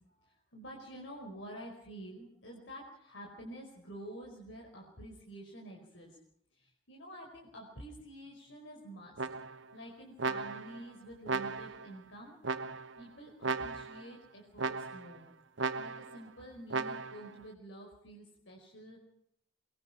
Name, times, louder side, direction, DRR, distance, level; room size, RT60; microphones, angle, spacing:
voice 1, 0.0-6.2 6.5-9.3 9.7-15.3 15.7-19.0, right 1 dB, 70° left, 0 dB, 5.0 m, -49 dB
sound 1, 9.2-9.7 10.2-10.8 11.3-11.9 12.4-13.0 13.4-14.1 14.6-15.2 15.6-16.2 16.7-17.3, right 4 dB, 75° right, 1.2 m, -36 dB
24.0 x 22.5 x 5.9 m, 0.71 s
head